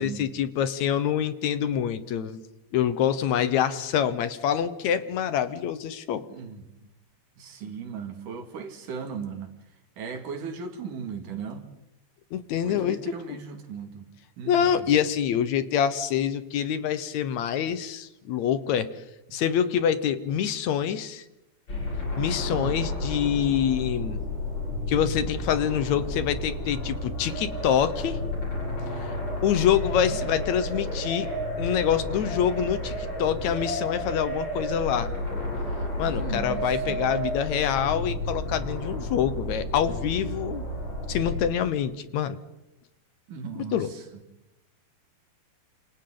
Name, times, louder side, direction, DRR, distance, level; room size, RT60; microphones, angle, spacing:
voice 1, 0.0-2.4 2.7-6.3 12.3-13.0 14.5-18.9 19.3-21.2 22.2-24.2 24.9-28.2 29.0-29.2 29.4-31.3 31.6-35.1 36.0-40.7 41.1-42.4 43.6-43.9, left 9 dB, 70° left, 2.2 m, -26 dB
voice 2, 6.3-6.6 7.4-9.5 10.0-11.7 12.6-14.1 14.4-14.9 22.5-22.8 30.1-30.4 36.1-37.0 43.3-44.0, right 5 dB, 85° right, 3.8 m, -37 dB
sound 1, 21.7-41.4, left 1 dB, 40° left, 8.0 m, -31 dB
28.5 x 27.5 x 3.9 m
omnidirectional pair, 3.5 m